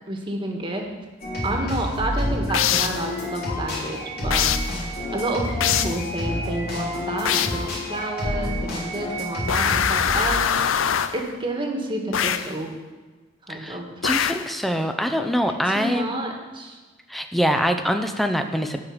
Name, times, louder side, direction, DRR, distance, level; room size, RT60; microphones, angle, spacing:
voice 1, 0.1-0.9 1.4-4.5 5.1-10.8 11.1-12.7 13.4-13.9 15.6-16.8, right 1 dB, 25° right, 1 dB, 1.5 m, -29 dB
sound 1, 1.2-10.4, left 1 dB, 50° left, 3.1 m, -29 dB
sound 2, 2.5-3.1 4.3-4.8 5.6-6.0 7.3-7.7 9.5-11.2 12.1-12.6 14.0-14.5, left 8 dB, 90° left, 0.5 m, -23 dB
voice 2, 13.5-16.2 17.1-18.8, equal, ahead, 6 dB, 0.6 m, -24 dB
13.0 x 4.8 x 8.7 m, 1.3 s
head